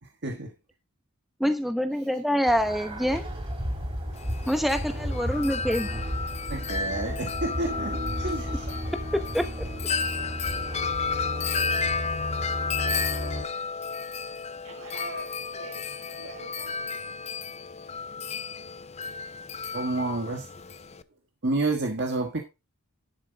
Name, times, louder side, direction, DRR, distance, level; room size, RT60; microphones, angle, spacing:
voice 1, 1.4-3.3 4.5-6.0 9.3-9.4, equal, ahead, 0.9 m, -26 dB
sound 1, 2.4-13.4, equal, 25° right, 3.9 m, -33 dB
Wind chime, 4.2-21.0, left 5 dB, 30° left, 0.5 m, -33 dB
voice 2, 6.5-8.7 19.7-20.5 21.4-22.4, right 2 dB, 55° right, 1.5 m, -29 dB
voice 3, 9.4-10.2 10.6-11.3 12.6-13.0 14.6-16.7, right 3 dB, 85° right, 4.7 m, -46 dB
11.0 x 7.4 x 3.9 m
head